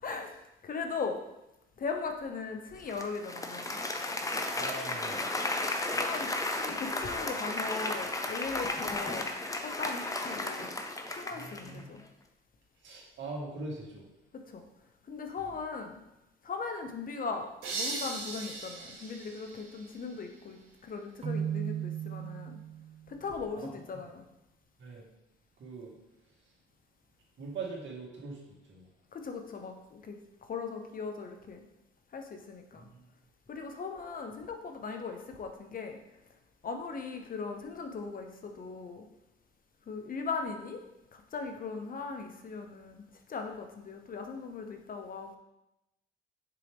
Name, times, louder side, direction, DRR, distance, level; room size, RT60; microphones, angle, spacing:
voice 1, 0.0-0.3 0.6-1.2 1.8-3.8 5.9-9.3 9.6-10.8 11.1-12.0 14.3-14.6 15.1-16.0 16.4-22.6 23.1-24.2 29.1-30.2 30.5-31.6 32.1-32.9 33.5-36.0 36.6-39.1 39.9-40.8 41.1-43.0 43.3-45.4, left 4 dB, 45° left, 5 dB, 0.8 m, -39 dB
Applause, 2.9-11.8, left 2 dB, 15° left, 0.7 m, -34 dB
voice 2, 4.6-5.2 11.3-11.9 12.8-14.1 15.4-15.5 23.5-23.7 23.9-24.1 24.8-25.1 25.6-26.0 27.4-28.9 32.8-33.1, right 3 dB, 70° right, -3 dB, 2.1 m, -42 dB
sound 1, 17.6-20.4, right 3 dB, 90° right, 2.0 m, -39 dB
Keyboard (musical), 21.2-23.1, right 9 dB, 30° right, 0.6 m, -35 dB
6.8 x 4.6 x 3.6 m, 0.91 s
cardioid pair, 90°, 20 cm